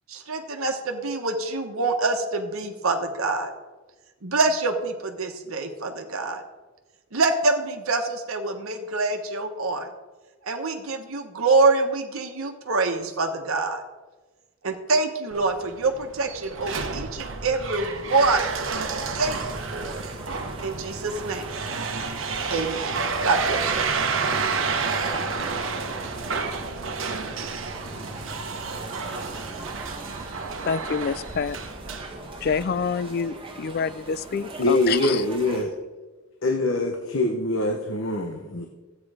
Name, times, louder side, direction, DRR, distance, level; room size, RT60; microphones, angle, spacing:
voice 1, 0.1-3.5 4.2-6.4 7.1-9.9 10.4-13.8 14.6-18.5 19.2-20.0 20.6-21.6 22.5-23.9, right 3 dB, 90° right, 1.2 m, -25 dB
sound 1, 15.3-32.8, right 4 dB, 65° right, 1.1 m, -30 dB
sound 2, 18.1-35.6, right 2 dB, 25° right, 1.6 m, -40 dB
voice 2, 30.6-31.6 32.4-35.2, left 6 dB, 50° left, 0.4 m, -27 dB
voice 3, 34.6-35.7 36.4-38.7, left 2 dB, 70° left, 1.0 m, -24 dB
13.0 x 8.7 x 4.9 m
head